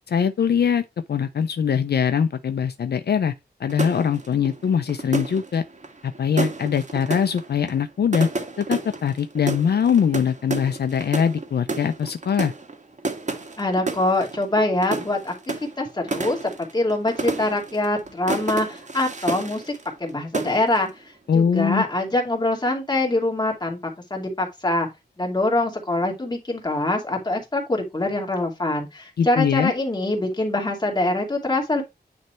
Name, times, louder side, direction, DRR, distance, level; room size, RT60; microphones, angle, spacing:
voice 1, 0.1-3.3 3.6-5.6 6.0-8.3 8.6-12.5 21.3-21.8 29.2-29.7, left 7 dB, 70° left, 0.5 m, -22 dB
sound 1, 3.7-20.1 20.3-20.9, right 3 dB, 45° right, 1.6 m, -31 dB
voice 2, 13.6-15.3 15.8-19.7 20.0-24.9 25.2-31.8, left 2 dB, 25° left, 2.5 m, -24 dB
9.4 x 3.3 x 4.3 m
wide cardioid pair, 125°, 17 cm